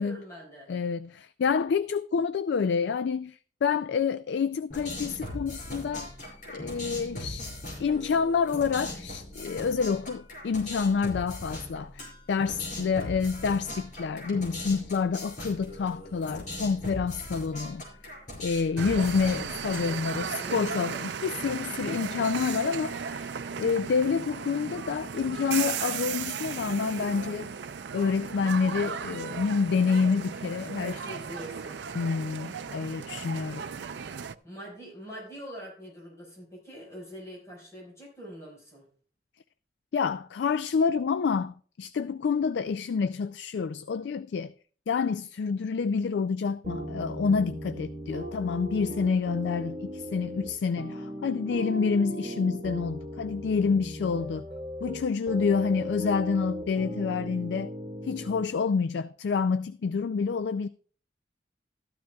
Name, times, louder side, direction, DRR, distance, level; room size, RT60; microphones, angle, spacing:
voice 1, 0.0-0.7 19.6-20.0 20.3-20.7 30.7-31.8 34.4-38.9, equal, 15° left, 4.9 m, -43 dB
voice 2, 0.7-6.1 6.5-7.5 7.8-17.8 18.4-27.5 27.9-31.0 31.9-33.6 39.9-44.5 44.9-54.5 54.8-57.7 58.0-60.7, left 5 dB, 80° left, 0.3 m, -28 dB
sound 1, 4.7-20.2, left 1 dB, 45° left, 4.9 m, -40 dB
sound 2, 18.8-34.3, right 6 dB, 85° right, 0.5 m, -36 dB
sound 3, 46.6-58.4, equal, 35° right, 2.1 m, -37 dB
13.5 x 12.0 x 2.3 m
head